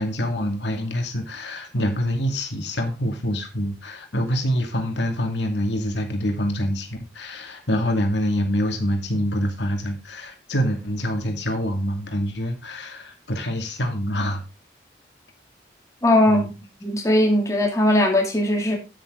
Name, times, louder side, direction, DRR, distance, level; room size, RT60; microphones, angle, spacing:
voice 1, 0.0-14.4 16.3-16.5, equal, 75° left, 4 dB, 2.3 m, -26 dB
voice 2, 16.0-16.5 16.8-18.8, left 1 dB, 15° left, 0 dB, 2.6 m, -19 dB
9.0 x 9.0 x 3.7 m, 0.29 s
head